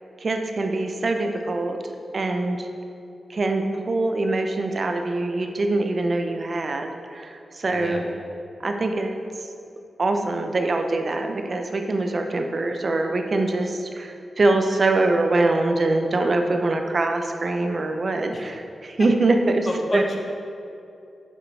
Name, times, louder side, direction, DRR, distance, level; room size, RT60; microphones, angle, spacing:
voice 1, 0.2-1.8 2.1-2.7 3.3-8.0 8.6-9.2 10.0-19.7 19.9-20.0, right 2 dB, 50° right, 5 dB, 0.6 m, -23 dB
voice 2, 7.7-8.0 18.3-18.5 19.7-20.3, left 1 dB, 40° left, 1 dB, 1.0 m, -30 dB
7.6 x 6.6 x 3.3 m, 2.5 s
cardioid pair, 70°, 0 cm